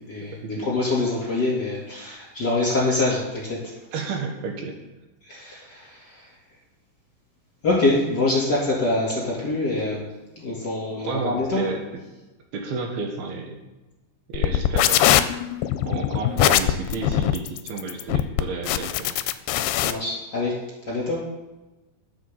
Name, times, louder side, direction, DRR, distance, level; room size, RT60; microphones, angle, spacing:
voice 1, 0.0-3.6 5.2-6.3 7.6-10.1 10.4-11.6 19.7-20.6 20.8-21.2, left 2 dB, 25° left, -5 dB, 3.2 m, -25 dB
voice 2, 3.9-4.8 11.1-11.8 12.5-13.6 14.3-15.3 15.8-19.2, right 4 dB, 70° right, 1 dB, 3.2 m, -31 dB
sound 1, 14.3-19.9, left 12 dB, 85° left, 2.5 m, -21 dB
20.0 x 7.1 x 4.0 m, 1.1 s
omnidirectional pair, 4.7 m